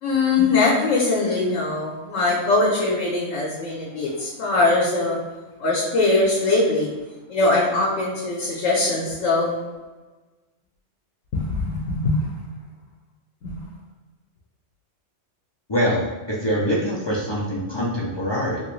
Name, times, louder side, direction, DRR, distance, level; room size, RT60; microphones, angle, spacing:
voice 1, 0.0-5.2 5.6-6.9 7.3-9.5 11.3-12.2 13.4-13.6, left 3 dB, 75° left, -4 dB, 1.0 m, -21 dB
voice 2, 15.7-18.6, equal, 40° left, -6 dB, 0.3 m, -24 dB
3.0 x 2.9 x 3.1 m, 1.2 s
omnidirectional pair, 1.3 m